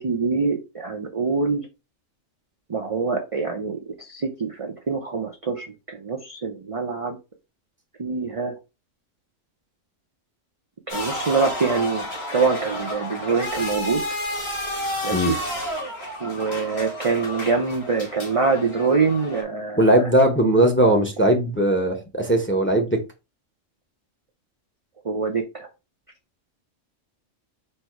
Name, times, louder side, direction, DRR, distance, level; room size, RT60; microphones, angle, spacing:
voice 1, 0.0-1.6 2.7-7.2 8.0-8.5 10.9-14.0 15.0-15.4 16.2-19.9 25.0-25.7, right 4 dB, 40° right, 2 dB, 0.5 m, -25 dB
sound 1, 10.9-19.4, left 1 dB, 55° left, 2.0 m, -31 dB
voice 2, 19.8-23.0, right 1 dB, 10° left, 3 dB, 0.7 m, -19 dB
4.4 x 2.7 x 4.5 m, 0.27 s
omnidirectional pair, 1.3 m